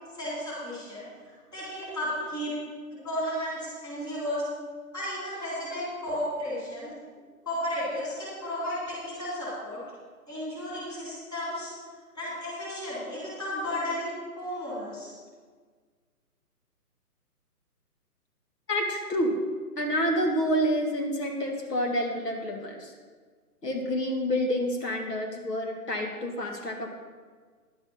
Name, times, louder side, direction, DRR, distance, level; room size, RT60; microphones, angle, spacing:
voice 1, 0.1-2.5 2.9-4.4 4.9-6.9 7.5-9.8 10.3-11.7 12.1-15.1, left 1 dB, 10° left, -9 dB, 3.8 m, -33 dB
voice 2, 18.7-19.3 19.8-22.9 23.6-26.9, equal, 85° left, 2 dB, 2.2 m, -28 dB
11.0 x 8.3 x 5.7 m, 1.5 s
hypercardioid pair, 155°, 47 cm